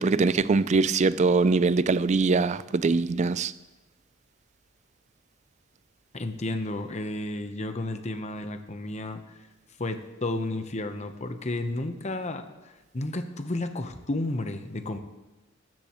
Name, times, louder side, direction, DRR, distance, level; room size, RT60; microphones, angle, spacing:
voice 1, 0.0-3.5, right 4 dB, 35° right, 0.4 m, -22 dB
voice 2, 6.1-9.2 9.8-12.4 12.9-15.0, left 2 dB, 35° left, 0.9 m, -32 dB
14.0 x 14.0 x 3.1 m
head